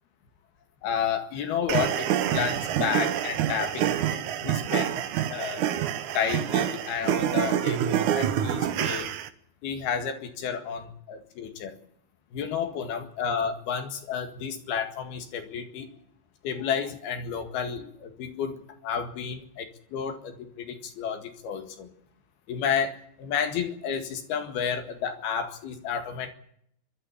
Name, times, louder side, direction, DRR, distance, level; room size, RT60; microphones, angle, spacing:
voice 1, 0.8-5.6 6.1-9.1 9.6-11.8 12.3-15.9 16.4-21.9 22.5-26.3, left 7 dB, 70° left, 7 dB, 3.7 m, -31 dB
sound 1, 1.7-9.3, right 10 dB, 70° right, 1.9 m, -27 dB
29.5 x 12.5 x 8.3 m, 0.70 s
omnidirectional pair, 4.8 m